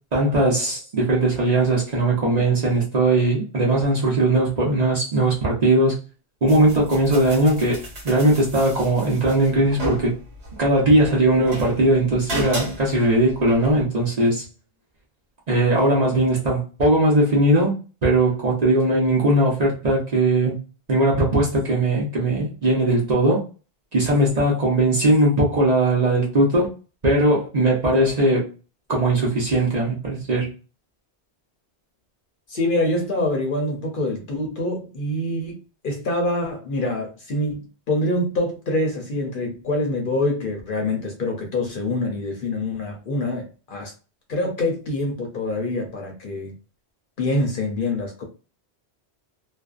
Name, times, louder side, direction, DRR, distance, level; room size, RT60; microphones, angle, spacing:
voice 1, 0.1-6.0 6.4-10.1 10.6-14.5 15.5-17.8 18.0-20.6 20.9-23.4 23.9-26.7 27.0-28.4 28.9-30.5, right 1 dB, 40° right, 0.8 m, -19 dB
sound 1, 6.5-13.8, right 1 dB, 75° right, 1.2 m, -35 dB
voice 2, 32.5-35.6 35.8-43.9 44.3-46.5 47.2-48.2, left 1 dB, 55° left, 0.7 m, -25 dB
2.5 x 2.1 x 2.4 m
omnidirectional pair, 1.1 m